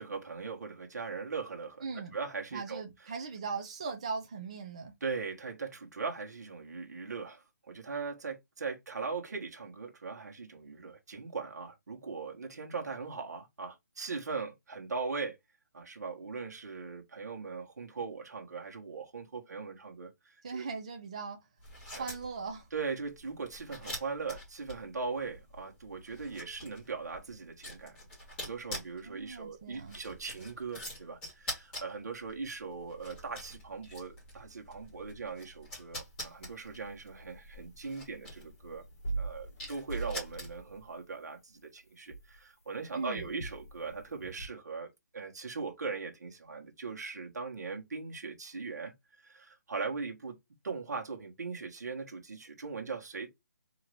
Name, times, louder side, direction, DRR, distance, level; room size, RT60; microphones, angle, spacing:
voice 1, 0.0-1.9 2.1-2.8 5.0-15.4 15.7-20.7 21.9-22.0 22.7-28.0 28.4-38.8 39.2-50.4 50.6-53.3, right 4 dB, 65° right, 1.3 m, -40 dB
voice 2, 1.8-2.1 2.5-4.9 20.4-21.4 21.9-22.7 29.0-30.0 42.9-43.3, right 4 dB, 20° right, 0.4 m, -39 dB
sound 1, 21.6-40.8, left 1 dB, 10° left, 1.6 m, -46 dB
sound 2, 36.0-36.4 36.7-36.8 38.1-41.6 42.1-44.5, right 3 dB, 55° left, 1.6 m, -41 dB
3.9 x 2.8 x 3.1 m
hypercardioid pair, 175°, 10 cm